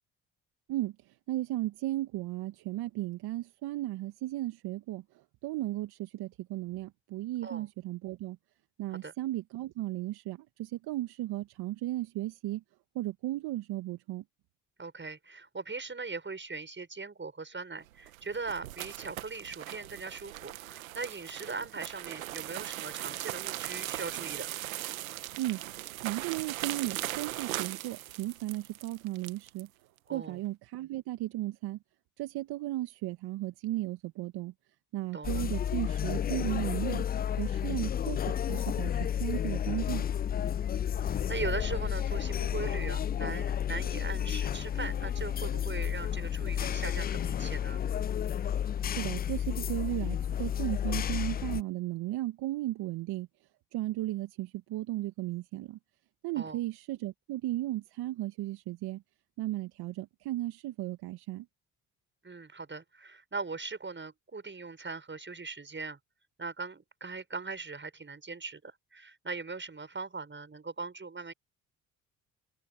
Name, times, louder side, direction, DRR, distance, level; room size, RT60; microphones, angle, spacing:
voice 1, 0.7-8.4 8.8-12.6 13.0-14.2 25.4-25.6 26.0-29.7 30.1-31.8 32.2-34.5 34.9-37.1 37.4-40.1 48.9-53.3 53.7-55.8 56.2-59.0 59.4-61.5, right 16 dB, 70° right, 1.9 m, -35 dB
voice 2, 14.8-24.5 30.1-30.4 35.1-35.5 41.3-47.8 56.4-56.6 62.2-66.0 66.4-71.3, right 4 dB, 30° right, 7.8 m, -40 dB
sound 1, 17.9-29.7, right 15 dB, 90° right, 1.5 m, -39 dB
sound 2, 35.2-51.6, left 9 dB, 25° left, 0.4 m, -31 dB
hypercardioid pair, 50°, 40 cm